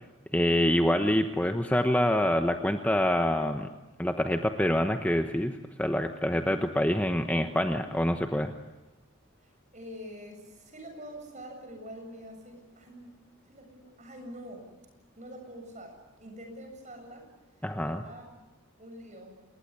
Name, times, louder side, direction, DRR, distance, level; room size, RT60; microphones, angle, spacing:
voice 1, 0.3-3.7 4.0-8.5 17.6-18.0, left 1 dB, 10° left, 6 dB, 1.0 m, -26 dB
voice 2, 6.3-6.6 9.4-13.2 13.5-14.7 15.2-17.3 17.8-18.4 18.8-19.4, equal, 35° right, 4 dB, 7.5 m, -45 dB
28.0 x 21.0 x 9.7 m, 1.1 s
head